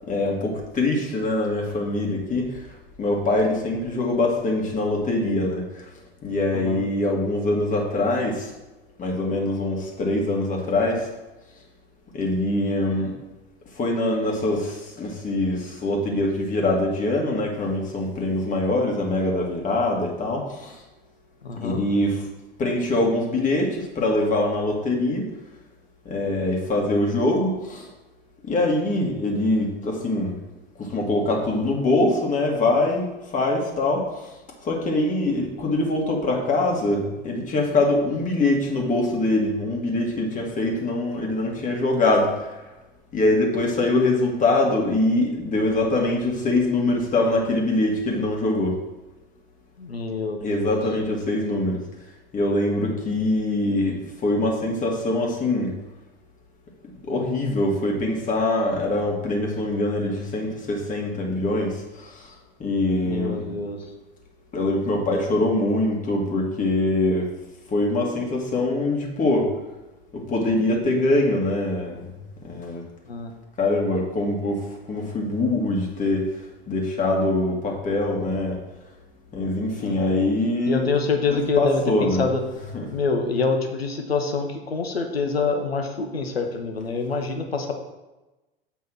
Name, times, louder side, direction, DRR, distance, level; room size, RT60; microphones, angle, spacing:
voice 1, 0.1-2.7 3.0-5.9 6.2-8.5 9.0-11.1 12.1-13.2 13.8-20.8 21.5-22.3 22.6-25.3 26.1-27.9 28.4-30.4 30.8-34.3 34.6-42.5 43.1-48.8 50.4-51.8 52.3-55.7 57.0-62.3 62.6-63.5 64.5-67.3 67.7-69.5 70.1-72.1 72.4-72.9 73.6-76.3 76.7-78.6 79.3-80.9 81.3-82.3 82.7-82.9, left 2 dB, 25° left, 0 dB, 2.0 m, -23 dB
voice 2, 21.4-21.8 49.8-50.8 63.0-63.8 73.1-73.3 79.8-80.0 80.7-82.4 82.9-87.7, left 4 dB, 80° left, 4 dB, 1.1 m, -26 dB
8.3 x 3.6 x 6.3 m, 1.1 s
figure-of-eight pair, 80°, 30 cm